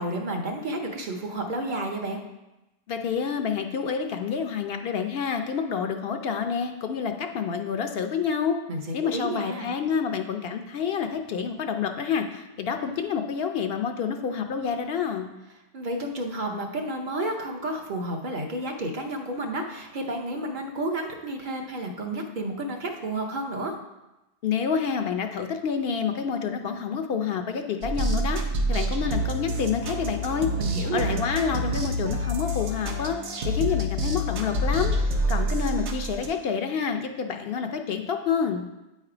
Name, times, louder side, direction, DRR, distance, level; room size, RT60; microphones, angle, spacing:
voice 1, 0.0-2.2 8.7-8.8 9.1-9.7 15.7-23.8 30.6-31.2, right 1 dB, 50° right, 1 dB, 0.8 m, -31 dB
voice 2, 2.9-8.6 8.9-15.3 24.4-28.4 28.7-30.5 30.9-33.2 33.4-38.6, left 6 dB, 65° left, 6 dB, 0.8 m, -28 dB
sound 1, 27.8-36.3, equal, 85° right, 1.0 m, -27 dB
8.5 x 3.3 x 4.8 m, 0.99 s
omnidirectional pair, 1.1 m